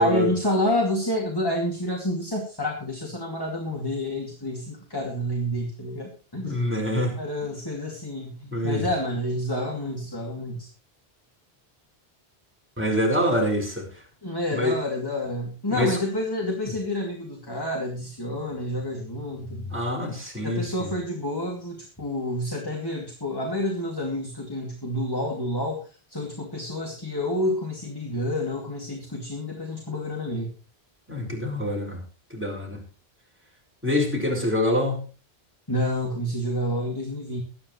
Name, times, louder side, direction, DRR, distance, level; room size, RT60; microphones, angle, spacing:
voice 1, 0.0-6.7 7.2-10.7 14.2-19.7 20.4-30.5 35.7-37.4, left 1 dB, 20° left, 0 dB, 2.6 m, -29 dB
voice 2, 6.4-7.2 8.5-8.9 12.8-13.9 14.5-14.8 15.7-16.0 19.7-20.9 31.1-32.0 32.3-32.8 33.8-35.0, left 1 dB, 10° right, -1 dB, 5.5 m, -25 dB
23.0 x 9.7 x 3.2 m, 0.36 s
omnidirectional pair, 1.1 m